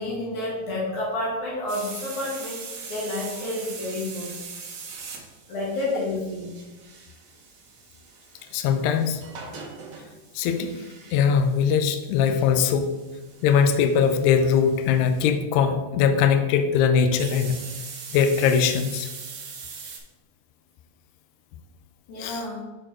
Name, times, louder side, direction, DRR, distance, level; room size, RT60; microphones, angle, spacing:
voice 1, 0.0-2.6 2.9-4.3 5.5-6.5 22.1-22.6, left 2 dB, 60° left, -5 dB, 3.3 m, -29 dB
sound 1, 1.7-15.3 17.2-20.0, right 5 dB, 85° right, 1.2 m, -42 dB
voice 2, 8.5-9.2 10.3-10.7 11.1-12.9 13.4-17.6 18.1-19.1 22.2-22.4, left 7 dB, 85° left, 7 dB, 1.7 m, -21 dB
6.5 x 4.4 x 4.4 m, 1.2 s
omnidirectional pair, 4.0 m